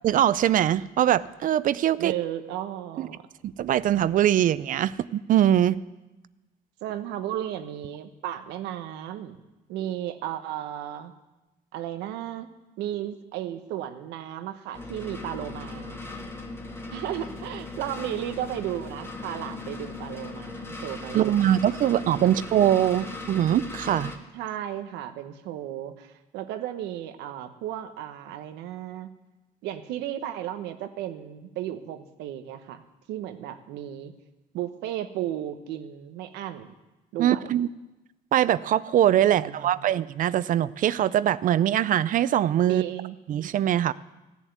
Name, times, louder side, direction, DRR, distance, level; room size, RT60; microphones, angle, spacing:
voice 1, 0.0-2.1 3.0-3.1 3.4-5.8 21.1-24.1 37.2-37.7 38.3-42.8 43.3-43.9, right 11 dB, 50° right, 18 dB, 0.5 m, -22 dB
voice 2, 2.0-3.2 6.8-9.4 9.7-11.1 11.7-12.5 12.8-16.0 16.9-21.5 22.2-22.3 24.3-29.1 29.6-32.8 33.1-34.1 34.5-36.7 37.1-37.6 39.3-39.9 42.6-43.2, right 11 dB, 90° right, 9 dB, 1.1 m, -34 dB
sound 1, 14.7-24.2, left 3 dB, 15° left, 1.6 m, -38 dB
15.5 x 7.3 x 9.4 m, 1.1 s
cardioid pair, 110°, 17 cm